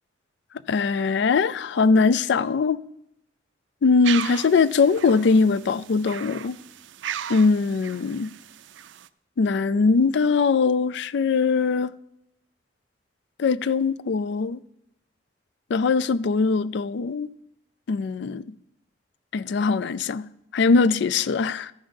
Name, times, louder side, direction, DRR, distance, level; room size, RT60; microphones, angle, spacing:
voice 1, 0.7-2.8 3.8-6.6 7.3-8.3 9.4-11.9 13.4-14.6 15.7-17.3 17.9-18.4 19.3-20.3 20.5-21.7, left 4 dB, 65° left, 0.4 m, -21 dB
sound 1, 4.0-9.1, right 10 dB, 80° right, 0.4 m, -36 dB
13.5 x 5.6 x 5.2 m
head